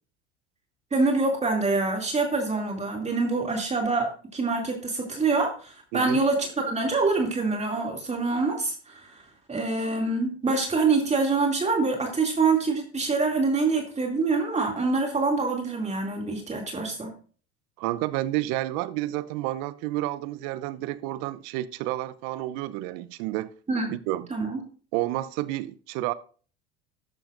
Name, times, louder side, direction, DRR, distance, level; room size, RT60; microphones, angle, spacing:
voice 1, 0.9-9.2 9.5-17.1 23.7-23.9 24.3-24.6, right 3 dB, 20° right, 2.6 m, -25 dB
voice 2, 5.9-6.2 17.8-23.5 23.9-24.3 24.9-26.1, right 16 dB, 60° right, 0.8 m, -30 dB
13.0 x 12.0 x 2.6 m
hypercardioid pair, 80°, 33 cm